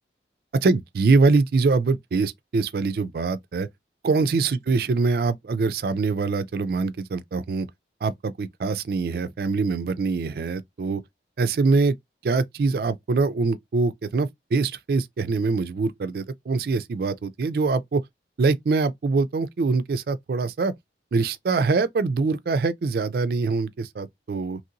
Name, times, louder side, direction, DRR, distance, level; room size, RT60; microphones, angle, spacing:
voice 1, 0.6-3.7 4.0-7.7 8.0-11.0 11.4-11.9 12.2-18.0 18.4-20.7 21.1-24.6, right 4 dB, 55° right, 0.3 m, -24 dB
2.9 x 2.8 x 2.5 m
head